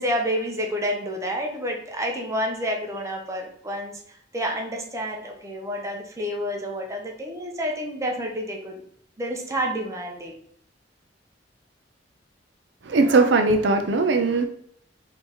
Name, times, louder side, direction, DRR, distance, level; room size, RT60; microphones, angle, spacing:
voice 1, 0.0-8.8 9.2-10.4, equal, 15° right, 0.7 m, -29 dB
voice 2, 12.8-14.5, right 3 dB, 70° right, 0.5 m, -19 dB
4.5 x 2.8 x 3.5 m
head